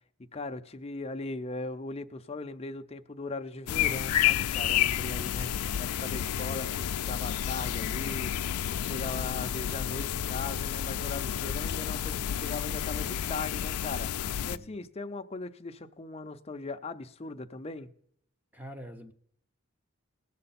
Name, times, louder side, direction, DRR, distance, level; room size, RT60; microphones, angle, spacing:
voice 1, 0.3-8.3 8.7-14.1 14.5-17.9, left 3 dB, 25° left, 0.6 m, -39 dB
sound 1, 3.7-14.6, left 10 dB, 90° left, 0.4 m, -30 dB
voice 2, 14.4-14.8 18.5-19.1, equal, 5° right, 0.8 m, -45 dB
19.0 x 6.7 x 4.2 m
head